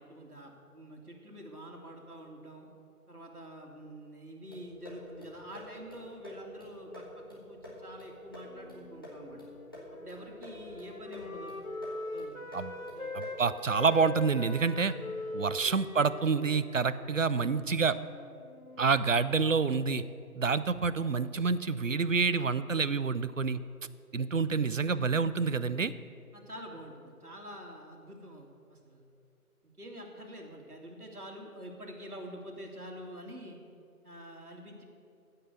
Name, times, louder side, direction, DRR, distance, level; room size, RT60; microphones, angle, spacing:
voice 1, 0.0-2.7 3.1-9.4 10.0-11.6 12.1-12.5 12.9-13.1 26.3-29.0 29.6-33.6 34.0-34.8, equal, 75° right, 0 dB, 2.6 m, -47 dB
sound 1, 4.5-14.2, left 1 dB, 15° left, 1.3 m, -48 dB
Wind instrument woodwind instrument, 8.5-13.4 13.7-19.0, left 2 dB, 65° left, 1.5 m, -43 dB
voice 2, 13.1-15.0 15.3-18.0 18.8-20.0 20.4-23.6 24.1-25.9, right 5 dB, 60° right, 15 dB, 0.6 m, -28 dB
14.5 x 5.7 x 8.1 m, 2.5 s
figure-of-eight pair, 165°, 45 cm